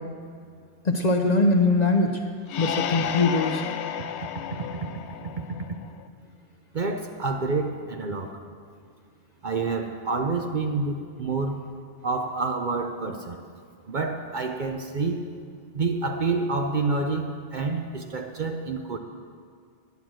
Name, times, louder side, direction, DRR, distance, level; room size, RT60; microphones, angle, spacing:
voice 1, 0.8-2.2 2.6-3.6, left 2 dB, 40° left, 4 dB, 0.7 m, -21 dB
sound 1, 2.5-6.1, left 9 dB, 70° left, 0.8 m, -32 dB
voice 2, 6.7-8.4 9.4-11.6 12.0-13.4 13.9-15.2 15.7-19.0, right 3 dB, 50° right, 4 dB, 0.7 m, -28 dB
10.0 x 9.5 x 6.2 m, 2.2 s
omnidirectional pair, 1.2 m